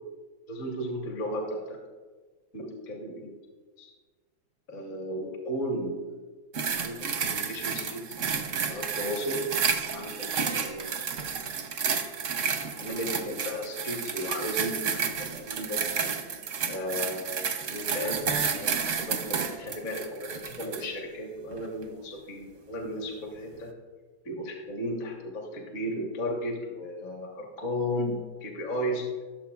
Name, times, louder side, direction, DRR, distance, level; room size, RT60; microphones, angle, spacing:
voice 1, 0.5-1.8 2.5-3.3 3.8-3.9 4.7-6.1 6.7-8.2 8.6-9.4 9.9-11.0 12.8-16.0 16.7-23.7 24.2-29.0, equal, 40° left, 1 dB, 1.5 m, -35 dB
sound 1, 6.5-20.9 21.5-21.7, right 6 dB, 60° right, 0.8 m, -31 dB
17.0 x 7.4 x 2.4 m, 1.4 s
omnidirectional pair, 2.2 m